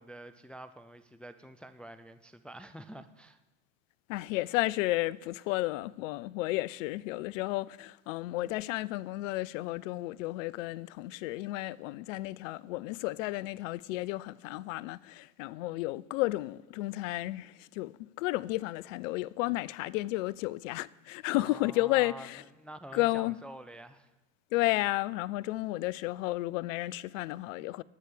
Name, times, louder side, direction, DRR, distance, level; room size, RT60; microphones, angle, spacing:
voice 1, 0.0-3.4 21.3-24.1, right 1 dB, 5° left, 0.4 m, -47 dB
voice 2, 4.1-22.4 22.9-23.4 24.5-27.8, left 19 dB, 70° left, 0.5 m, -32 dB
13.0 x 4.7 x 8.6 m
hypercardioid pair, 90°, 41 cm